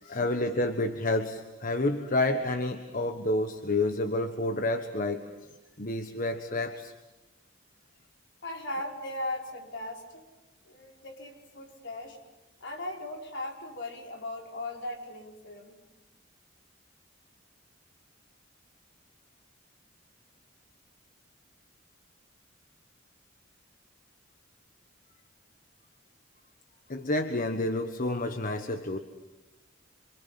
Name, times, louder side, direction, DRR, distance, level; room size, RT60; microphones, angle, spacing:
voice 1, 0.0-5.5 5.8-6.9 26.9-29.0, left 2 dB, 45° left, 7 dB, 1.4 m, -29 dB
voice 2, 8.4-10.3 10.7-12.2 12.6-15.8, left 1 dB, 65° left, 1 dB, 5.2 m, -38 dB
27.5 x 25.5 x 7.6 m, 1.1 s
head